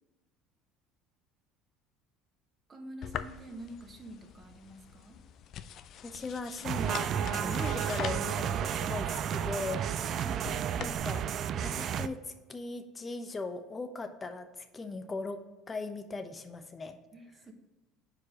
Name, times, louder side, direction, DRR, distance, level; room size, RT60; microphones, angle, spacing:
voice 1, 2.7-5.2 10.1-10.6 17.1-17.5, right 1 dB, 30° right, 4 dB, 1.2 m, -47 dB
sound 1, 3.0-11.0, left 10 dB, 55° left, 0.4 m, -45 dB
voice 2, 6.0-9.8 10.7-11.2 11.5-15.4 15.7-17.0, left 3 dB, 25° left, 7 dB, 0.7 m, -39 dB
sound 2, 6.6-12.1, right 9 dB, 50° right, 0.3 m, -32 dB
4.8 x 4.7 x 4.9 m, 1.2 s
supercardioid pair, 90°, 0 cm